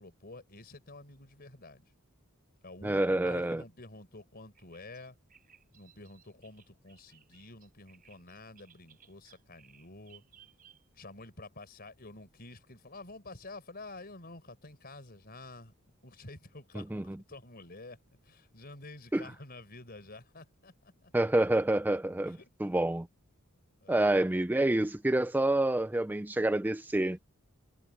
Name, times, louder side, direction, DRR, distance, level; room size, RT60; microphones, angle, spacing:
voice 1, 0.0-1.8 2.6-5.1 5.7-10.2 10.9-15.7 16.0-21.1 22.3-22.7 23.8-24.1, left 2 dB, 45° left, 4.9 m, -49 dB
voice 2, 2.8-3.6 16.9-17.2 19.1-19.2 21.1-23.1 23.9-27.2, right 1 dB, 10° right, 0.4 m, -28 dB
Bird vocalization bird call bird song, 4.6-11.1, right 9 dB, 40° right, 6.3 m, -61 dB
head